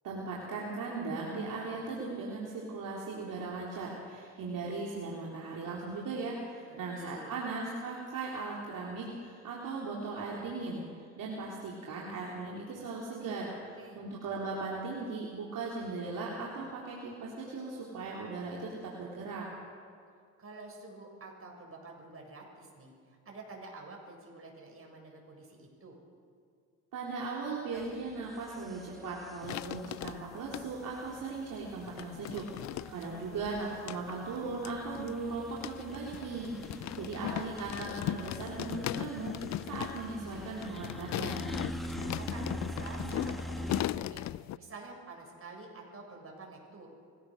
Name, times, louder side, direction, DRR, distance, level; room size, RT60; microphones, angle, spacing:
voice 1, 0.0-13.5 13.9-19.5 26.9-39.4 39.7-41.4, right 3 dB, 60° right, -4 dB, 3.6 m, -38 dB
voice 2, 6.5-7.3 13.5-14.0 20.4-26.0 33.0-33.7 36.7-37.5 42.2-44.3 44.6-46.9, right 3 dB, 40° right, 0 dB, 7.2 m, -49 dB
sound 1, 27.7-43.8, equal, ahead, 1.9 m, -44 dB
sound 2, 29.4-30.9 31.6-44.6, left 14 dB, 50° left, 0.5 m, -38 dB
24.0 x 16.5 x 6.5 m, 2.3 s
supercardioid pair, 70°, 36 cm